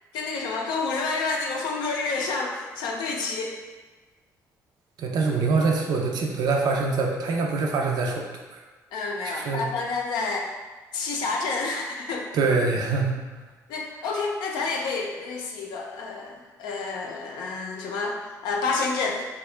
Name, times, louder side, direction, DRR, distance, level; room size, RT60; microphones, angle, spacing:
voice 1, 0.1-3.6 8.9-10.5 10.9-12.3 13.7-19.3, left 4 dB, 85° left, 0 dB, 0.5 m, -29 dB
voice 2, 5.0-8.3 8.5-8.6 9.2-9.6 12.3-13.2, right 4 dB, 65° right, 1 dB, 0.4 m, -24 dB
2.8 x 2.3 x 3.2 m, 1.3 s
supercardioid pair, 70°, 7 cm